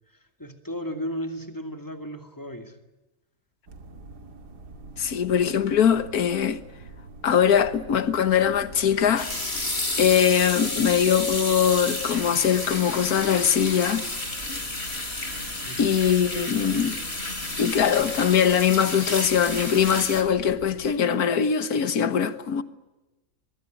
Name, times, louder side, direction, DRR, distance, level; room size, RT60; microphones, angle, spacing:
voice 1, 0.0-2.8 15.6-16.0, equal, 10° left, 2.4 m, -35 dB
sound 1, 3.7-20.9, right 3 dB, 80° right, 3.0 m, -45 dB
voice 2, 5.0-6.6 7.2-9.3 10.0-14.1 15.8-17.0 17.6-22.6, left 8 dB, 70° left, 1.8 m, -22 dB
sound 2, 9.0-20.2, left 2 dB, 40° left, 3.9 m, -31 dB
23.0 x 22.5 x 9.2 m
omnidirectional pair, 1.7 m